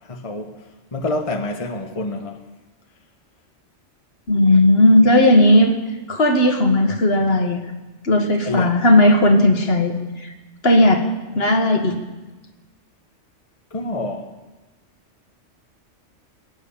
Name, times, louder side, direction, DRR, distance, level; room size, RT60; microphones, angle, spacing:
voice 1, 0.0-0.6 0.9-2.4 8.4-8.8 13.7-14.3, left 2 dB, 30° left, 1.0 m, -27 dB
voice 2, 4.3-5.7 6.1-7.6 8.0-9.9 10.2-10.3 10.6-11.0 11.4-11.9, left 1 dB, 55° left, 1.8 m, -15 dB
20.5 x 9.4 x 7.0 m
omnidirectional pair, 1.2 m